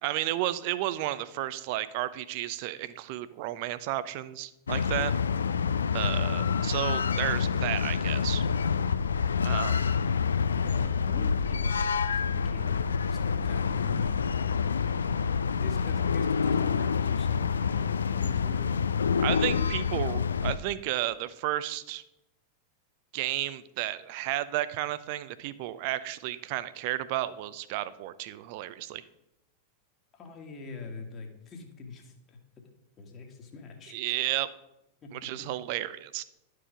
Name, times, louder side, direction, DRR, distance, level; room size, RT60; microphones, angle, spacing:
voice 1, 0.0-5.1 5.9-8.4 9.4-9.9 19.2-22.0 23.1-29.0 33.9-34.5 35.1-36.2, right 14 dB, 45° right, 16 dB, 0.5 m, -32 dB
sound 1, 4.7-20.6, left 6 dB, 70° left, 0.3 m, -27 dB
voice 2, 10.5-14.6 15.5-18.7 30.1-32.4 33.0-34.2 35.0-35.5, left 3 dB, 30° left, 3 dB, 1.6 m, -43 dB
11.0 x 4.7 x 4.9 m, 0.88 s
figure-of-eight pair, 90°, 0 cm